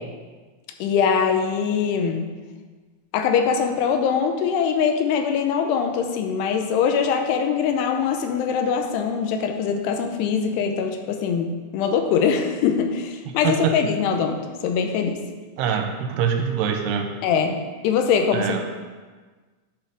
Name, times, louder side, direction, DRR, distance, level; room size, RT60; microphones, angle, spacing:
voice 1, 0.8-2.3 3.1-15.2 17.2-18.7, left 6 dB, 85° left, 5 dB, 2.8 m, -22 dB
voice 2, 15.6-17.1 18.3-18.6, right 7 dB, 90° right, 4 dB, 2.7 m, -24 dB
10.5 x 5.7 x 3.5 m, 1.4 s
omnidirectional pair, 4.7 m